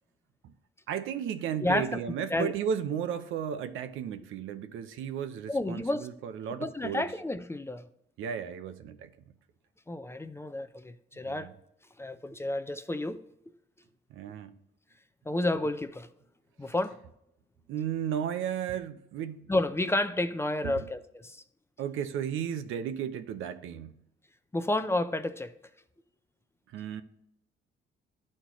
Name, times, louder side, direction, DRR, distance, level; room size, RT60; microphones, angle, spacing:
voice 1, 0.9-7.1 8.2-9.1 11.2-11.5 14.1-14.6 17.7-19.5 20.6-20.9 21.8-23.9 26.7-27.0, right 8 dB, 85° right, 0.6 m, -34 dB
voice 2, 1.6-2.0 2.3-2.5 5.5-6.1 6.6-7.8 9.9-11.5 12.0-13.2 15.3-16.1 16.6-17.0 19.5-21.4 24.5-25.5, left 1 dB, 15° left, 0.4 m, -30 dB
11.5 x 4.3 x 3.0 m
cardioid pair, 90°, 20 cm